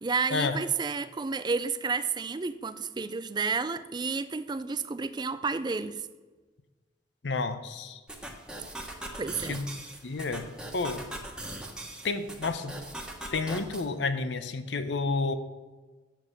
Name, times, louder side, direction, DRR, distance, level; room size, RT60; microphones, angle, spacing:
voice 1, 0.0-6.0 9.1-9.6, right 4 dB, 25° right, 13 dB, 0.4 m, -31 dB
voice 2, 7.2-8.0 9.5-9.6 10.0-10.5 10.7-11.0 12.0-12.7 13.3-15.4, left 3 dB, 80° left, 10 dB, 0.7 m, -30 dB
sound 1, 8.1-13.8, right 1 dB, 5° right, 1.2 m, -41 dB
7.5 x 7.5 x 6.5 m, 1.3 s
head